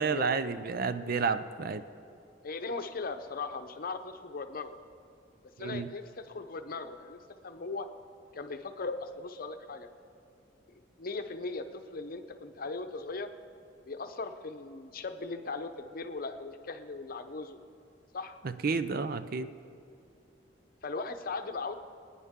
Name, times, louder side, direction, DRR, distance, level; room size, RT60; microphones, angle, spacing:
voice 1, 0.0-1.8 5.6-5.9 18.4-19.5, right 5 dB, 55° right, 12 dB, 0.5 m, -31 dB
voice 2, 2.4-4.8 5.6-7.9 8.3-9.9 11.0-13.3 13.9-17.6 18.1-18.4 20.8-21.7, left 3 dB, 50° left, 8 dB, 0.7 m, -38 dB
24.0 x 9.6 x 3.7 m, 2.6 s
head